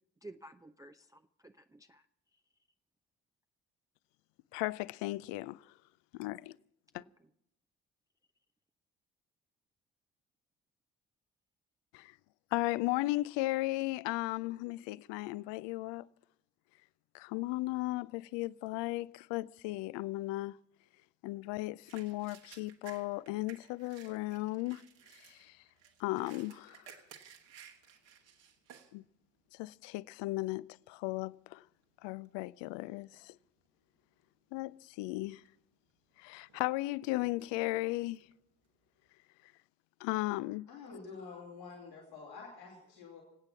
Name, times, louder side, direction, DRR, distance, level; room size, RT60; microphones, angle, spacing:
voice 1, 0.2-2.1 2.3-2.4 6.9-7.3, right 1 dB, 5° right, 0.5 m, -54 dB
voice 2, 4.5-5.6 6.1-6.6 6.9-7.0 11.9-12.1 12.5-16.1 17.1-20.6 21.2-24.8 25.2-25.6 26.0-26.8 28.9-29.0 29.5-31.6 32.0-33.3 34.5-35.4 36.2-38.2 40.0-40.7, left 19 dB, 60° left, 0.6 m, -36 dB
sound 1, 21.9-29.0 29.5-29.6 30.1-30.5 31.2-31.4 31.7-32.8 33.1-33.7 34.1-34.2 35.0-35.6 36.0-39.1, right 8 dB, 60° right, 1.9 m, -57 dB
voice 3, 40.7-43.2, left 4 dB, 85° left, 3.4 m, -48 dB
26.5 x 8.9 x 5.7 m
figure-of-eight pair, 45°, 49 cm